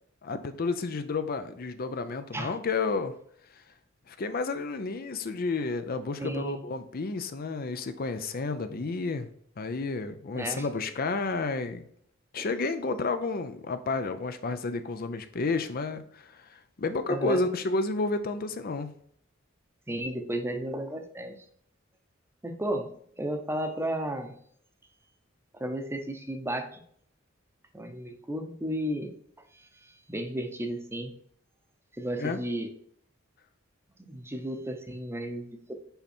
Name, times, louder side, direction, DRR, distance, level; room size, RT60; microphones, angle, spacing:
voice 1, 0.2-3.1 4.1-9.3 9.6-11.8 12.3-18.9 32.2-32.4, left 3 dB, 50° left, 10 dB, 0.5 m, -31 dB
voice 2, 6.2-6.6 10.3-10.7 12.4-12.5 12.9-13.0 17.1-17.4 19.9-21.3 22.4-22.9 23.2-24.3 25.5-26.8 27.7-29.1 29.5-31.1 31.9-32.7 34.0-35.8, right 1 dB, 10° right, 6 dB, 0.8 m, -33 dB
5.7 x 5.3 x 4.4 m, 0.63 s
head